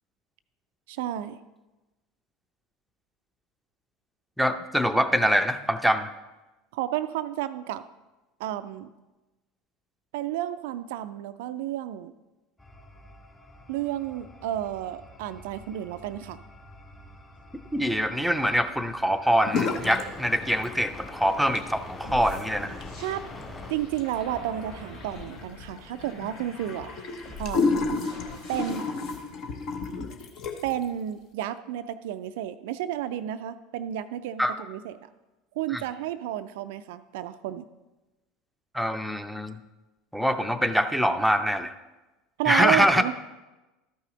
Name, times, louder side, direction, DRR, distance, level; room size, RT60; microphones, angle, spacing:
voice 1, 0.9-1.4 6.7-7.8 8.4-8.9 10.1-12.1 13.7-16.4 23.0-23.2 23.7-26.9 27.4-27.7 28.5-28.9 30.6-35.0 35.6-37.7 42.4-43.1, right 12 dB, 65° right, 12 dB, 0.3 m, -31 dB
voice 2, 4.4-6.1 17.7-22.7 34.4-34.5 35.7-35.8 38.7-39.6 40.1-41.7 42.5-43.0, equal, ahead, 7 dB, 0.6 m, -24 dB
sound 1, 12.6-25.5, left 2 dB, 15° left, 1.8 m, -46 dB
sound 2, 19.5-20.1 20.3-21.0 21.4-30.8, left 4 dB, 50° left, 0.9 m, -32 dB
sound 3, 22.0-29.2, left 3 dB, 70° left, 3.2 m, -44 dB
13.0 x 5.6 x 3.9 m, 1.1 s
figure-of-eight pair, 70°, 0 cm